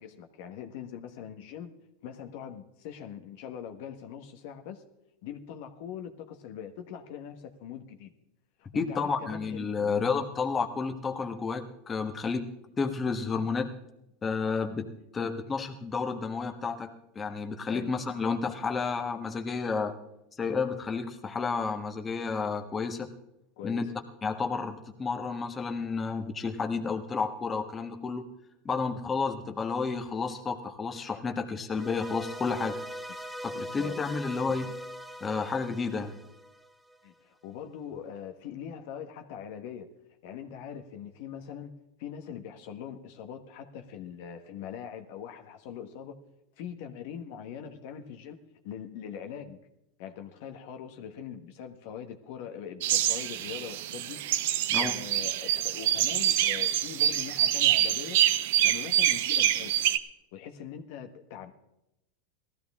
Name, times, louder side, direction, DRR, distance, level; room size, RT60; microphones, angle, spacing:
voice 1, 0.0-1.7 2.0-4.8 5.2-8.1 8.6-10.0 17.7-17.9 23.6-23.9 33.5-34.0 37.0-39.9 40.2-41.7 42.0-46.2 46.6-48.4 48.6-49.6 50.0-54.2 54.8-58.2 58.6-59.8 60.3-61.5, left 8 dB, 65° left, 6 dB, 1.3 m, -42 dB
voice 2, 8.7-12.5 12.8-13.7 14.2-14.9 15.1-16.9 17.1-19.9 20.4-23.1 23.6-23.9 24.2-28.2 28.6-32.8 33.4-34.7 35.2-36.1 54.7-54.9, left 4 dB, 20° left, 5 dB, 1.4 m, -31 dB
sound 1, 31.7-37.0, equal, ahead, 1.1 m, -41 dB
sound 2, 52.8-60.0, right 12 dB, 70° right, 0.7 m, -26 dB
18.5 x 14.0 x 3.6 m, 0.88 s
supercardioid pair, 115°, 0 cm